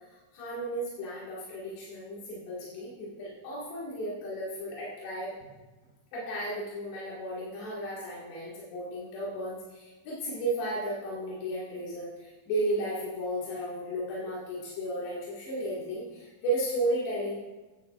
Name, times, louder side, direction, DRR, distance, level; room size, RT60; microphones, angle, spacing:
voice 1, 0.3-5.3 6.1-17.4, right 1 dB, 90° left, -6 dB, 4.1 m, -34 dB
13.0 x 11.0 x 2.5 m, 1.2 s
omnidirectional pair, 4.7 m